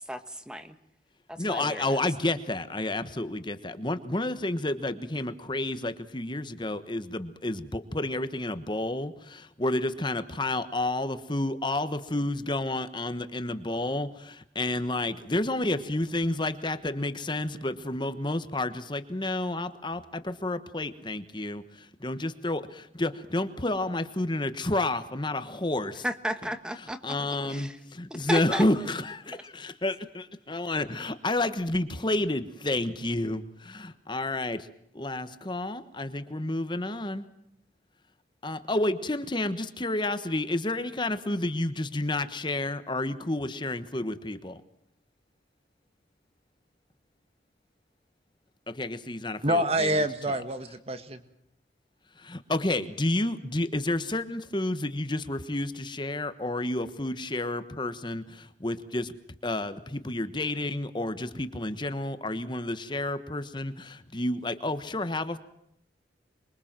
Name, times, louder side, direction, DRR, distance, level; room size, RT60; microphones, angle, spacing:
voice 1, 0.1-0.7 1.3-2.0 26.0-27.2 27.5-27.8 28.1-28.6 29.3-29.4, equal, 5° right, 10 dB, 1.4 m, -34 dB
voice 2, 1.4-21.6 22.0-26.0 27.0-34.7 34.9-37.2 38.4-44.6 48.7-49.9 52.2-59.1 59.4-65.4, left 2 dB, 25° left, 11 dB, 1.3 m, -30 dB
voice 3, 49.4-51.2, right 1 dB, 35° right, 10 dB, 1.8 m, -27 dB
26.5 x 23.0 x 7.6 m, 0.76 s
head